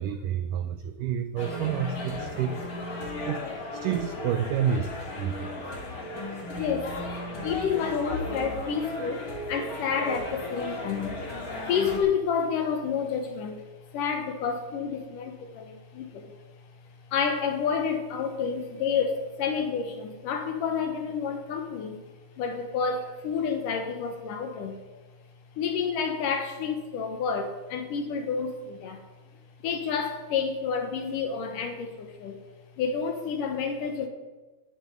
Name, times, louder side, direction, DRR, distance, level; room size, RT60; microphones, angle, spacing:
voice 1, 0.0-2.6 3.2-3.4 3.7-5.5, right 8 dB, 85° right, 10 dB, 1.9 m, -29 dB
sound 1, 1.4-12.0, left 1 dB, 25° left, 2.3 m, -36 dB
voice 2, 6.5-7.0 7.4-16.3 17.1-22.0 22.4-24.8 25.6-29.0 29.6-32.4 32.8-34.1, left 6 dB, 65° left, 6 dB, 2.5 m, -29 dB
12.5 x 7.0 x 9.9 m, 1.2 s
omnidirectional pair, 4.5 m